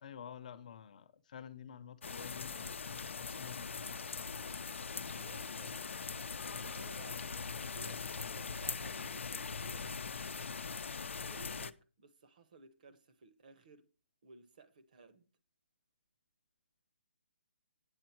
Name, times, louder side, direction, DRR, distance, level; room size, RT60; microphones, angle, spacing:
voice 1, 0.0-4.0, left 8 dB, 35° left, 0.7 m, -50 dB
sound 1, 2.0-11.7, left 5 dB, 75° left, 0.6 m, -41 dB
voice 2, 4.9-5.8 6.5-10.0 11.0-13.9 14.2-15.3, right 3 dB, 40° right, 1.0 m, -57 dB
8.9 x 7.5 x 4.5 m
hypercardioid pair, 165°, 7 cm